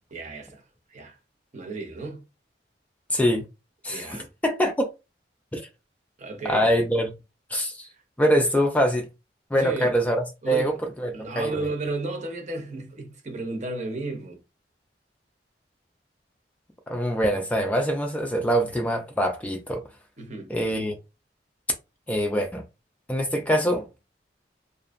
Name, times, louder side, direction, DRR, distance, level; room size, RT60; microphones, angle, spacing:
voice 1, 0.1-1.2 1.5-2.2 3.9-4.3 6.2-6.7 7.8-8.0 9.6-10.0 10.4-10.8 11.1-14.4 20.2-20.5, right 2 dB, 45° right, 0.7 m, -33 dB
voice 2, 3.1-3.4 3.8-4.1 4.4-4.9 5.5-5.7 6.4-7.1 7.5-7.9 8.2-9.1 9.5-10.2 10.5-10.7 11.0-11.5 16.9-19.8 20.5-21.0 22.1-22.6 23.1-23.9, equal, 10° left, 0.3 m, -24 dB
2.6 x 2.5 x 2.4 m
head